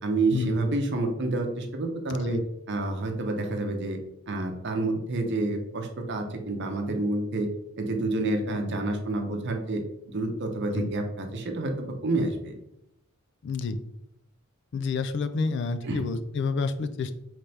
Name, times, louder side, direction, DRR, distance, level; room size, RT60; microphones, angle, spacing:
voice 1, 0.0-2.4 2.7-4.0 4.3-7.5 7.8-9.8 10.1-12.6 15.8-16.0, right 2 dB, 55° right, 4 dB, 0.7 m, -28 dB
voice 2, 13.4-13.8 14.7-17.1, left 4 dB, 55° left, 10 dB, 0.3 m, -29 dB
4.1 x 3.3 x 3.3 m, 0.82 s
head